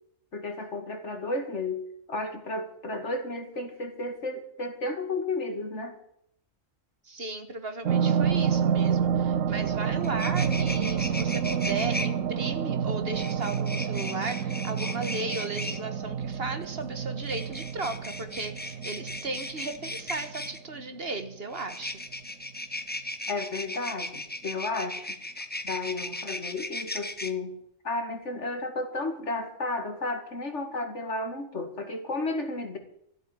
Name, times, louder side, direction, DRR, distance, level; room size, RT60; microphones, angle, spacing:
voice 1, 0.3-6.0 14.8-14.9 23.3-25.1 25.6-27.5 27.8-32.8, left 2 dB, 60° left, 5 dB, 2.6 m, -33 dB
voice 2, 7.0-22.0, right 3 dB, 50° right, 9 dB, 1.7 m, -36 dB
sound 1, 7.8-20.8 21.2-21.3, right 7 dB, 80° right, 1.1 m, -29 dB
sound 2, 9.7-9.8 10.0-12.1 13.1-15.8 17.2-20.6 21.5-27.3, left 1 dB, 10° left, 0.9 m, -37 dB
13.5 x 8.0 x 9.9 m, 0.74 s
omnidirectional pair, 1.3 m